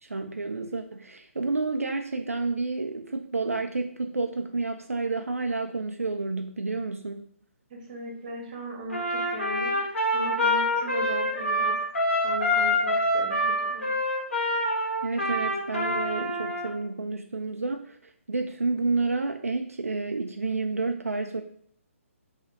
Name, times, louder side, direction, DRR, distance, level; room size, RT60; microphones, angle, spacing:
voice 1, 0.0-7.3 15.0-21.4, right 3 dB, 75° right, 5 dB, 0.4 m, -30 dB
voice 2, 7.7-9.7 10.1-11.7 12.2-13.9, equal, 35° right, 1 dB, 1.0 m, -37 dB
Trumpet, 8.9-16.7, left 1 dB, 60° left, 1.7 m, -26 dB
6.5 x 2.8 x 2.6 m, 0.62 s
figure-of-eight pair, 135°, 8 cm